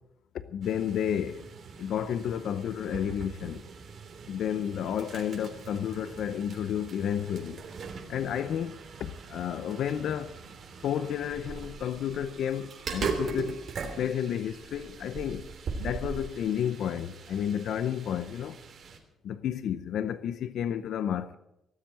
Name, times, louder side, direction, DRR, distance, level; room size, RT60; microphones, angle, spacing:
voice 1, 0.5-1.5 1.8-3.6 4.3-7.6 8.1-10.4 10.8-13.6 14.0-15.5 15.8-18.6 19.2-21.4, left 9 dB, 70° left, 0.7 m, -31 dB
sound 1, 0.6-19.0, right 5 dB, 55° right, 3.2 m, -40 dB
18.5 x 7.7 x 8.8 m
cardioid pair, 90°, 0 cm